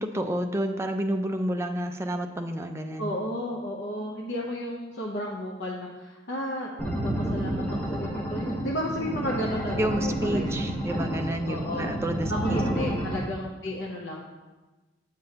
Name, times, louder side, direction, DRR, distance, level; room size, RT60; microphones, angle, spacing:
voice 1, 0.0-3.1 9.7-12.9, right 1 dB, 15° right, 4 dB, 0.4 m, -30 dB
voice 2, 3.0-10.5 10.9-11.0 11.5-11.9 12.3-14.2, left 1 dB, 65° left, -3 dB, 0.8 m, -33 dB
sound 1, 6.8-13.2, right 1 dB, 5° left, 1.0 m, -30 dB
7.5 x 7.4 x 2.9 m, 1.2 s
head